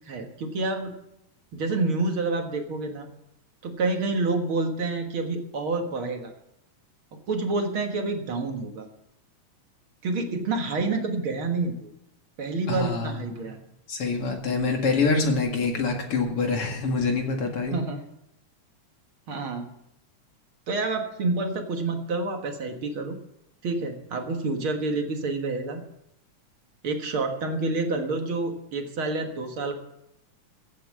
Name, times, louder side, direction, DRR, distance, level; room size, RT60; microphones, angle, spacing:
voice 1, 0.1-0.9 1.5-3.1 3.6-6.3 7.3-8.9 10.0-11.9 12.4-13.6 17.7-18.0 19.3-19.7 20.7-23.2 23.6-25.8 26.8-29.7, right 3 dB, 50° right, 4 dB, 1.8 m, -28 dB
voice 2, 12.7-13.4 13.9-17.8, left 4 dB, 45° left, 2 dB, 2.6 m, -25 dB
15.5 x 7.5 x 7.6 m, 0.81 s
omnidirectional pair, 3.8 m